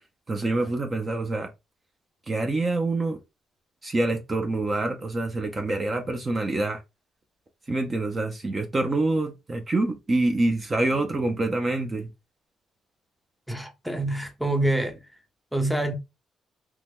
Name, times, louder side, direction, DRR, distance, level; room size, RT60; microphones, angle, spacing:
voice 1, 0.3-1.5 2.3-3.2 3.8-6.8 7.7-12.1, right 2 dB, 30° right, 0.7 m, -26 dB
voice 2, 13.5-15.0 15.5-15.9, right 1 dB, ahead, 0.8 m, -26 dB
3.0 x 2.9 x 3.6 m
cardioid pair, 90°, 0 cm